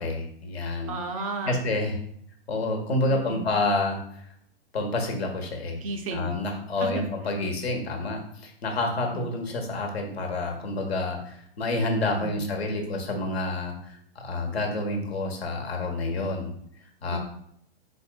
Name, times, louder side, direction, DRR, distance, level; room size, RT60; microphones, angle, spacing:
voice 1, 0.0-0.9 1.5-2.0 2.5-4.3 4.7-5.8 6.1-16.5 17.0-17.2, left 2 dB, 75° left, 3 dB, 1.1 m, -28 dB
voice 2, 0.9-1.7 3.1-3.5 5.8-6.3 6.8-7.1 9.0-9.3 12.1-12.4 17.1-17.2, right 3 dB, 35° right, 5 dB, 0.4 m, -33 dB
4.2 x 3.9 x 2.2 m, 0.68 s
hypercardioid pair, 130°, 32 cm